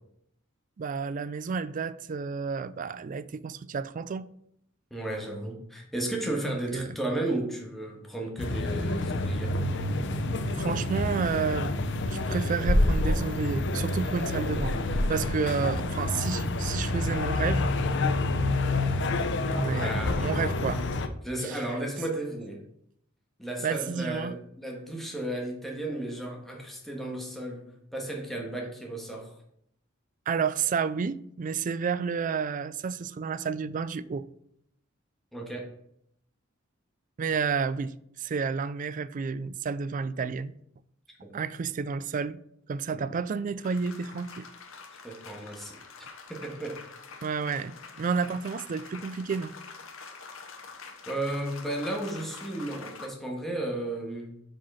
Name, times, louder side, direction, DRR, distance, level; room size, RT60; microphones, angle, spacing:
voice 1, 0.8-4.3 6.5-6.9 10.5-11.8 12.1-14.8 15.1-17.7 19.5-20.9 21.4-21.8 23.6-24.4 30.3-34.2 37.2-40.5 41.3-42.4 42.7-44.5 47.2-49.5, right 5 dB, 40° right, 0.3 m, -31 dB
voice 2, 4.9-9.5 19.7-20.3 21.2-22.6 23.4-27.6 27.9-29.3 35.3-35.7 41.2-41.3 42.9-43.0 45.0-45.8 46.3-46.8 51.1-54.3, right 1 dB, ahead, 1.6 m, -34 dB
sound 1, 8.4-21.1, left 2 dB, 60° left, 0.7 m, -28 dB
sound 2, 43.6-53.1, left 4 dB, 85° left, 1.1 m, -46 dB
5.8 x 5.2 x 5.6 m
head